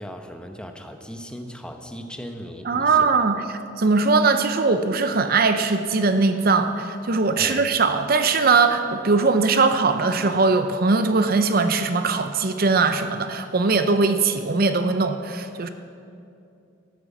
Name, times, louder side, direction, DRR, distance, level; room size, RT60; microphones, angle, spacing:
voice 1, 0.0-3.2 7.4-7.6, equal, 5° left, 5 dB, 0.9 m, -37 dB
voice 2, 2.7-3.4 3.8-15.7, right 4 dB, 50° right, 9 dB, 0.6 m, -20 dB
13.5 x 10.5 x 7.3 m, 2.6 s
head